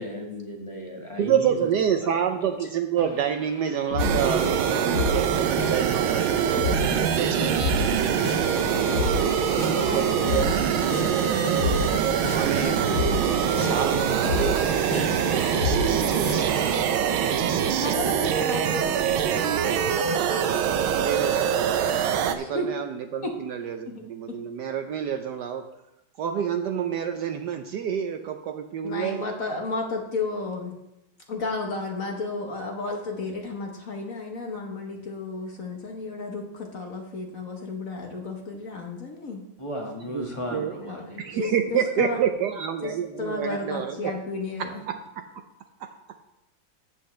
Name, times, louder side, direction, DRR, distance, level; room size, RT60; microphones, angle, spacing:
voice 1, 0.0-1.7 2.0-2.2 39.6-41.4, equal, 15° left, 0 dB, 1.3 m, -35 dB
voice 2, 1.2-9.3 9.9-10.5 12.3-12.9 13.5-16.7 20.9-25.6 26.2-29.3 40.1-40.3 40.5-40.8 41.2-44.1 44.9-45.0 45.8-45.9, right 8 dB, 70° right, 6 dB, 1.1 m, -29 dB
sound 1, 3.0-4.6 4.9-16.8, left 3 dB, 70° left, 2.4 m, -30 dB
sound 2, 4.0-22.4, right 8 dB, 85° right, 1.5 m, -24 dB
voice 3, 9.6-11.1 17.6-19.4 22.4-22.7 23.2-23.3 28.8-30.7 31.3-39.4 40.8-41.1 41.4-42.2 42.8-44.8, left 3 dB, 50° left, 2 dB, 1.3 m, -33 dB
13.5 x 8.3 x 3.2 m, 0.90 s
omnidirectional pair, 2.2 m